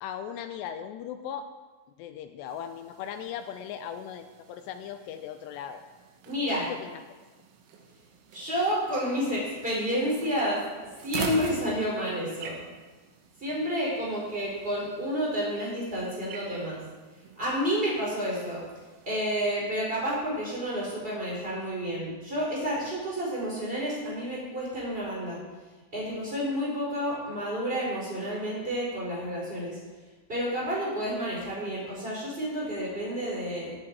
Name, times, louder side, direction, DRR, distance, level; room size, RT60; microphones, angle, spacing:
voice 1, 0.0-1.5 2.0-5.8 6.5-7.0, left 9 dB, 85° left, 8 dB, 2.6 m, -38 dB
sound 1, 2.5-19.6, right 6 dB, 85° right, 3.7 m, -45 dB
voice 2, 6.2-6.7 8.3-10.6 11.0-12.6 13.4-16.8 17.4-18.6 19.1-25.4 25.9-29.8 30.3-33.7, equal, 10° right, -5 dB, 4.1 m, -30 dB
16.5 x 8.8 x 4.6 m, 1.3 s
omnidirectional pair, 5.3 m